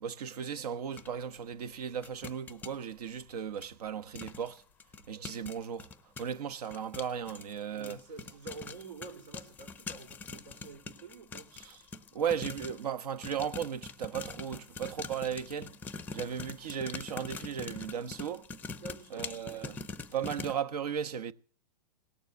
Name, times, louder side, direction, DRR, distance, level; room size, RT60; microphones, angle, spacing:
voice 1, 0.0-4.6 5.1-5.9 6.2-8.0 11.5-11.8 12.1-15.7 16.1-18.5 19.1-19.8 20.1-21.3, right 8 dB, 65° right, 1.2 m, -36 dB
sound 1, 1.0-1.1 2.0-2.7 3.6-3.7 4.2-4.5 4.8-12.9 13.2-20.6, left 4 dB, 10° left, 0.6 m, -43 dB
voice 2, 7.7-11.5 18.7-19.3, right 3 dB, 85° right, 4.6 m, -47 dB
18.5 x 7.1 x 8.1 m
hypercardioid pair, 150°, 21 cm